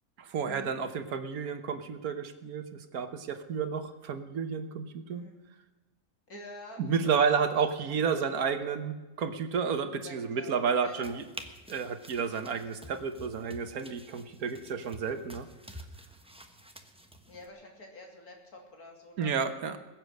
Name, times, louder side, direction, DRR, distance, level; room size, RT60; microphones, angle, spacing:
voice 1, 0.2-5.2 6.8-11.2 11.7-15.5 19.2-19.8, right 6 dB, 75° right, 9 dB, 1.5 m, -31 dB
voice 2, 6.3-7.4 7.8-8.3 10.0-11.1 17.3-19.4, left 1 dB, 80° left, 1 dB, 3.2 m, -48 dB
sound 1, 10.9-17.5, equal, 5° right, 0.9 m, -49 dB
21.0 x 7.8 x 6.5 m, 1.2 s
omnidirectional pair, 1.6 m